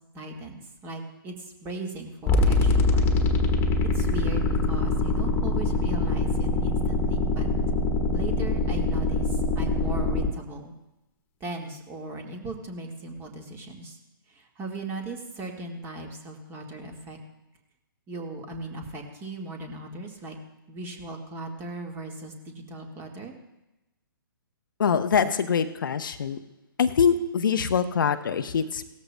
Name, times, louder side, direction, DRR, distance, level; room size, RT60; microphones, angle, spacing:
voice 1, 0.1-1.3 1.6-3.0 3.9-7.5 8.1-9.3 9.5-10.7 11.4-14.0 14.6-17.2 18.1-20.3 20.7-23.3, right 2 dB, 20° right, 3 dB, 1.6 m, -37 dB
sound 1, 2.3-10.3, left 2 dB, 20° left, 1.4 m, -24 dB
voice 2, 24.8-26.4 26.8-28.8, left 7 dB, 60° left, 9 dB, 0.8 m, -24 dB
17.5 x 13.5 x 2.2 m, 0.97 s
figure-of-eight pair, 130°, 12 cm